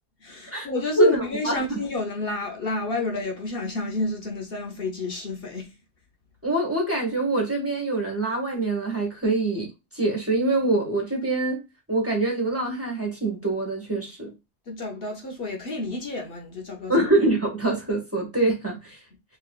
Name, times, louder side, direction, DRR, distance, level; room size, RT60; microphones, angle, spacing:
voice 1, 0.2-5.7 14.7-16.9, left 3 dB, 60° left, 1.0 m, -30 dB
voice 2, 1.0-1.8 6.4-9.7 9.9-11.6 11.9-14.3 16.9-19.0, right 2 dB, 10° right, 1.5 m, -24 dB
4.2 x 3.1 x 2.3 m
omnidirectional pair, 1.2 m